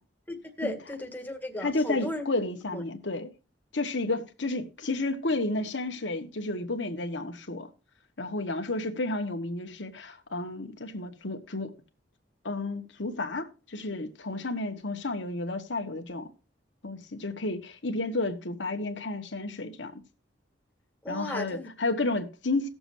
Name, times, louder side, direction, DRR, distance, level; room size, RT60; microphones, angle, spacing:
voice 1, 0.3-2.2 2.7-2.8 21.0-21.7, left 1 dB, 10° left, 1.7 m, -35 dB
voice 2, 1.6-3.3 3.7-7.7 8.2-11.7 12.4-16.3 16.8-20.0 21.1-22.7, left 2 dB, 80° left, 1.5 m, -31 dB
18.5 x 7.0 x 2.7 m
head